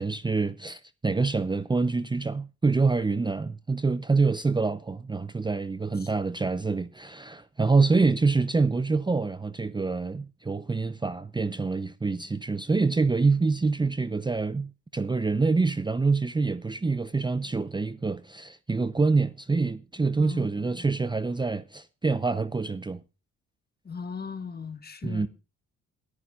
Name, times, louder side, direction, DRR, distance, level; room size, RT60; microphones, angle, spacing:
voice 1, 0.0-23.0 25.0-25.3, right 4 dB, 15° right, 0.6 m, -26 dB
voice 2, 20.2-20.7 23.8-25.3, left 5 dB, 30° left, 1.7 m, -38 dB
27.5 x 9.5 x 2.4 m
cardioid pair, 90°, 30 cm